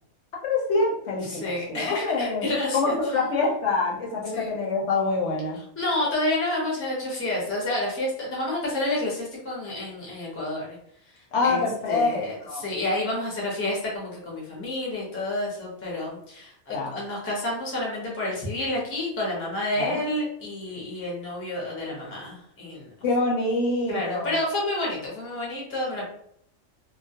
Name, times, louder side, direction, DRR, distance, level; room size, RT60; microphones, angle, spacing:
voice 1, 0.4-2.5 2.7-5.6 11.3-12.6 16.7-17.0 19.8-20.0 23.0-24.4, left 3 dB, 65° left, -1 dB, 0.8 m, -25 dB
voice 2, 1.3-2.9 4.3-4.5 5.8-10.8 11.4-22.9 23.9-26.1, left 1 dB, 15° left, -4 dB, 0.5 m, -29 dB
2.3 x 2.1 x 2.6 m, 0.68 s
omnidirectional pair, 1.3 m